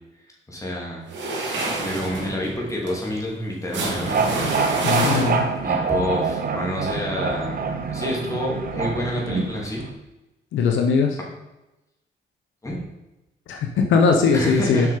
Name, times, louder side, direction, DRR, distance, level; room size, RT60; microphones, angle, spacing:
voice 1, 0.5-1.1 1.5-5.1 5.6-7.6 7.9-9.8 12.6-12.8 14.3-14.9, left 1 dB, 15° left, -3 dB, 2.8 m, -28 dB
sound 1, 1.1-5.7, right 2 dB, 65° right, 2.2 m, -28 dB
sound 2, 3.8-9.9, right 5 dB, 45° right, 1.1 m, -26 dB
voice 2, 4.8-5.5 10.5-11.2 13.5-14.9, left 5 dB, 75° left, 4 dB, 0.9 m, -19 dB
7.2 x 5.7 x 5.0 m, 0.98 s
cardioid pair, 90°, 20 cm